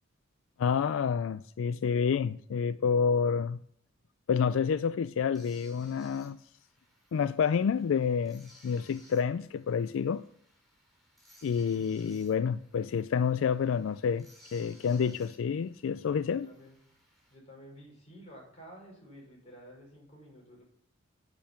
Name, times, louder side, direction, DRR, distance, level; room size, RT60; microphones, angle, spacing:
voice 1, 0.6-3.6 4.3-6.4 7.1-10.2 11.4-14.3 14.5-16.5, left 6 dB, 70° left, 0.3 m, -28 dB
sound 1, 5.3-17.4, equal, ahead, 3.8 m, -61 dB
voice 2, 16.2-16.8 17.3-20.6, equal, 35° left, 5.4 m, -51 dB
8.7 x 8.6 x 5.8 m
head